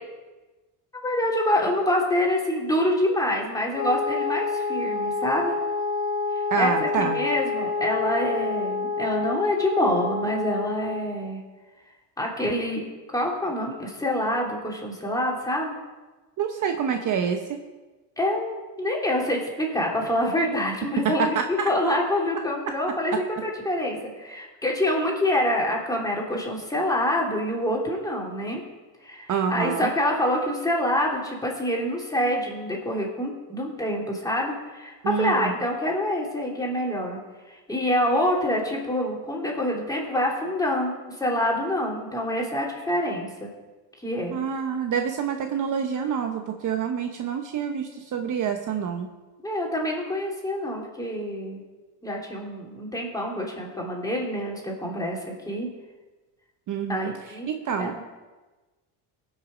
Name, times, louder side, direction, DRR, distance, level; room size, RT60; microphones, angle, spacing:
voice 1, 1.0-5.5 6.3-11.4 12.2-12.8 13.1-15.7 18.2-28.6 29.0-37.2 37.5-43.5 44.0-44.4 49.4-51.6 52.0-55.7 56.9-57.5 57.8-58.0, left 1 dB, 10° left, -2 dB, 3.1 m, -26 dB
Wind instrument woodwind instrument, 3.7-11.2, left 4 dB, 85° left, 1.3 m, -28 dB
voice 2, 6.5-7.2 16.4-17.6 21.2-21.7 29.3-29.9 35.0-35.5 44.3-49.1 56.7-57.1 57.5-57.9, right 7 dB, 45° right, 5 dB, 0.9 m, -27 dB
18.0 x 6.5 x 5.0 m, 1.2 s
supercardioid pair, 105°, 45 cm